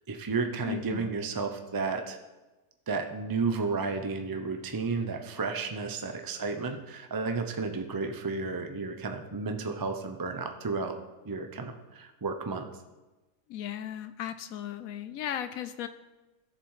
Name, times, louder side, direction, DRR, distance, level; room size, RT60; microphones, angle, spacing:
voice 1, 0.1-2.2 2.9-11.0 11.2-12.7, right 4 dB, 35° right, 5 dB, 0.3 m, -32 dB
voice 2, 0.6-1.2 13.5-15.9, left 10 dB, 70° left, 12 dB, 0.9 m, -36 dB
13.0 x 7.2 x 4.8 m, 1.1 s
omnidirectional pair, 1.6 m